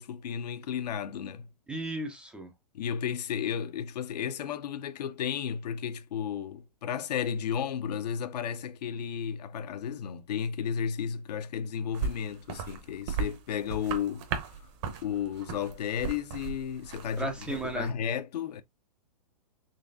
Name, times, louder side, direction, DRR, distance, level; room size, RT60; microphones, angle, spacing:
voice 1, 0.0-1.5 2.7-14.5 15.0-18.6, left 8 dB, 75° left, 0.6 m, -33 dB
voice 2, 1.7-2.5 17.2-17.9, right 2 dB, 5° right, 0.3 m, -34 dB
sound 1, 11.9-17.9, right 5 dB, 45° right, 0.8 m, -37 dB
3.9 x 3.1 x 2.5 m
hypercardioid pair, 150°, 21 cm